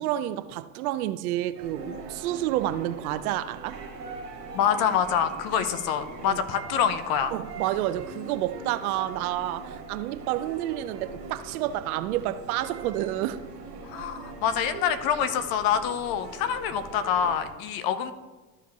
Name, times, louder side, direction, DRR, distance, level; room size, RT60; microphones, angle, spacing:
voice 1, 0.0-3.8 5.5-5.6 6.3-6.4 7.3-13.4, right 13 dB, 65° right, 0.6 m, -29 dB
sound 1, 1.6-17.5, right 3 dB, 85° right, 1.5 m, -42 dB
voice 2, 4.5-7.3 13.8-18.1, left 8 dB, 50° left, 0.9 m, -26 dB
13.0 x 5.0 x 3.1 m
hypercardioid pair, 75°, 47 cm